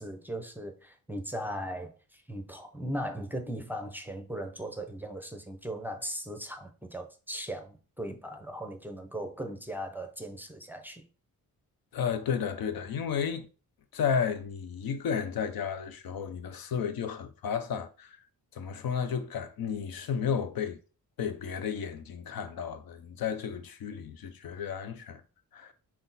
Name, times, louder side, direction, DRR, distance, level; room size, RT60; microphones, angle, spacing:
voice 1, 0.0-11.0, equal, 5° right, 0.5 m, -38 dB
voice 2, 11.9-13.5 13.9-18.2 18.5-20.8 21.2-25.2 25.5-25.7, left 7 dB, 80° left, 0.7 m, -32 dB
5.9 x 2.1 x 4.0 m
wide cardioid pair, 140°, 35 cm